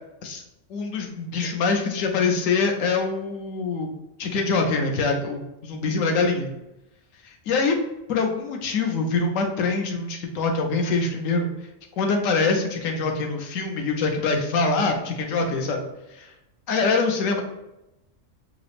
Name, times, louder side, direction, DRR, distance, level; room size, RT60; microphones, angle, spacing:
voice 1, 0.7-3.9 4.2-6.5 7.2-7.8 8.1-11.5 12.0-16.3 16.7-17.4, left 4 dB, 75° left, 3 dB, 1.0 m, -24 dB
4.9 x 2.0 x 3.3 m, 0.90 s
omnidirectional pair, 1.4 m